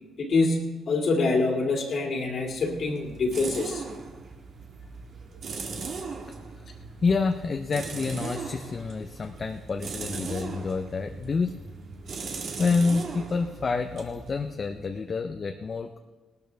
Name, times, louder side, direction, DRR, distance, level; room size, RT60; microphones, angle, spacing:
voice 1, 0.2-3.8, left 3 dB, 55° left, 1 dB, 2.4 m, -25 dB
sound 1, 2.4-15.0, right 4 dB, 60° right, 1.8 m, -39 dB
voice 2, 7.0-11.5 12.2-16.0, left 4 dB, 40° left, 5 dB, 0.7 m, -28 dB
18.5 x 12.5 x 3.5 m, 1.2 s
cardioid pair, 90°, 0 cm